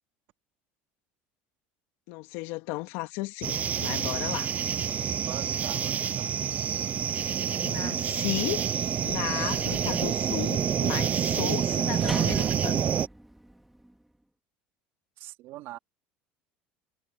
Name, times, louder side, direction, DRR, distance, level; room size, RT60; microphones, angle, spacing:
voice 1, 2.1-4.5 7.6-8.6 9.0-12.9, left 21 dB, 75° left, 2.3 m, -34 dB
sound 1, 3.4-13.1, right 8 dB, 35° right, 0.5 m, -28 dB
voice 2, 5.3-6.3 15.2-15.8, right 16 dB, 60° right, 4.1 m, -42 dB
Sliding door / Slam, 8.8-14.2, right 1 dB, 5° right, 4.3 m, -45 dB
supercardioid pair, 115°, 5 cm